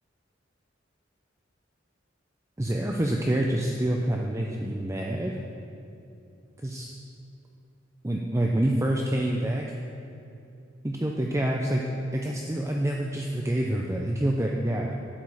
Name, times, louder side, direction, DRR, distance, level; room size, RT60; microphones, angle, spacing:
voice 1, 2.6-5.4 6.6-6.9 8.0-9.7 10.8-11.8 12.1-15.0, right 1 dB, 15° right, 0 dB, 0.5 m, -27 dB
11.5 x 5.2 x 7.2 m, 2.6 s
head